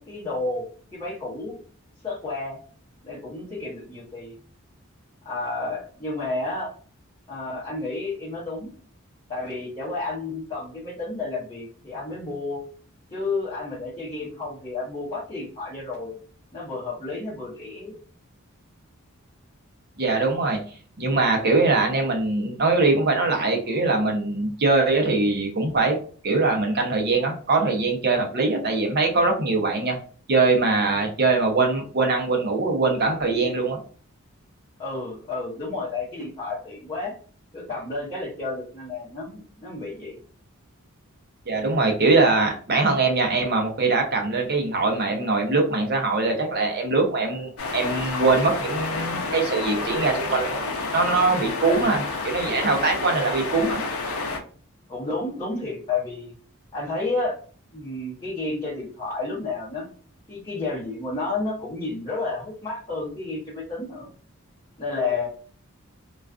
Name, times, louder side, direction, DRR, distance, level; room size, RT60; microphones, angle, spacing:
voice 1, 0.0-1.6 2.0-2.6 3.0-4.3 5.2-6.7 7.3-8.7 9.3-12.6 13.1-16.2 16.5-17.9 34.8-37.1 37.5-40.1 51.6-51.9 54.9-56.3 56.7-57.4 57.7-59.9 60.3-64.1 64.8-65.3, left 3 dB, 20° left, -8 dB, 0.8 m, -31 dB
voice 2, 20.0-20.6 21.0-26.0 26.2-30.0 30.3-33.8 41.5-50.6 50.9-53.8, right 3 dB, 50° right, 2 dB, 0.6 m, -22 dB
sound 1, 47.6-54.4, left 3 dB, 85° left, 0.6 m, -29 dB
2.3 x 2.3 x 2.3 m, 0.42 s
head